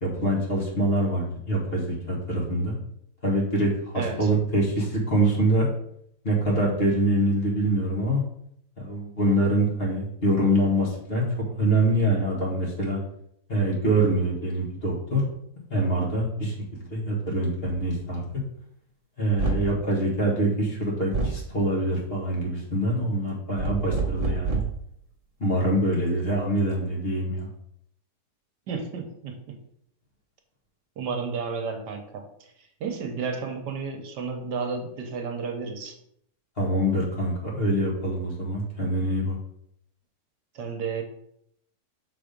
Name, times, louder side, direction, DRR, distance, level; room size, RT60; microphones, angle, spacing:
voice 1, 0.0-2.8 3.2-5.7 6.2-8.2 8.8-11.2 11.6-13.0 13.5-15.2 15.7-18.2 19.2-24.6 25.4-27.5 36.6-39.4, right 1 dB, 35° left, -3 dB, 1.9 m, -25 dB
voice 2, 3.9-4.3 28.7-29.4 31.0-32.3 32.8-35.9 40.5-41.0, right 5 dB, 70° right, 5 dB, 1.4 m, -32 dB
sound 1, 17.7-17.9 19.4-19.8 21.1-21.5 23.6-24.8, right 4 dB, 50° right, 0.4 m, -27 dB
6.0 x 4.2 x 5.1 m, 0.72 s
omnidirectional pair, 1.9 m